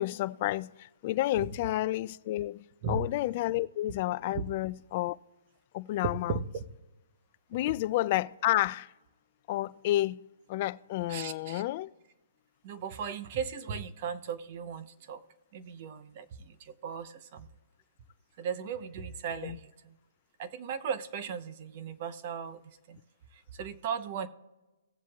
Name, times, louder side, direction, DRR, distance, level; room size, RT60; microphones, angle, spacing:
voice 1, 0.0-5.2 5.7-6.4 7.5-8.9 9.5-10.2 10.5-11.9 19.4-19.6, left 15 dB, 35° left, 0.3 m, -30 dB
voice 2, 6.0-6.6 11.1-11.6 12.6-15.2 15.5-17.5 18.4-19.9 20.4-22.6 22.9-23.0 23.5-24.3, right 6 dB, 40° right, 0.9 m, -36 dB
18.0 x 7.4 x 2.4 m
hypercardioid pair, 155°, 0 cm